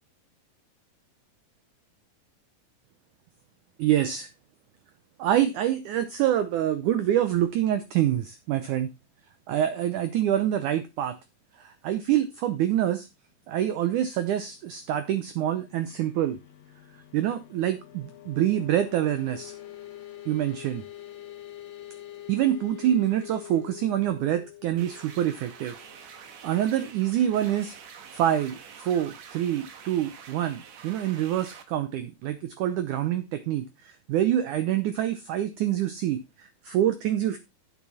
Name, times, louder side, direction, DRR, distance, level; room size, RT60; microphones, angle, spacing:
voice 1, 3.8-4.3 5.2-8.9 9.5-11.2 11.6-13.1 13.5-16.4 17.1-19.5 20.2-20.8 22.3-25.7 26.4-27.7 28.1-37.4, right 11 dB, 85° right, 10 dB, 1.7 m, -26 dB
sound 1, 14.3-26.8, left 13 dB, 90° left, 1.4 m, -46 dB
sound 2, 24.8-31.6, right 7 dB, 60° right, 2.0 m, -47 dB
9.4 x 7.4 x 4.1 m, 0.24 s
omnidirectional pair, 4.6 m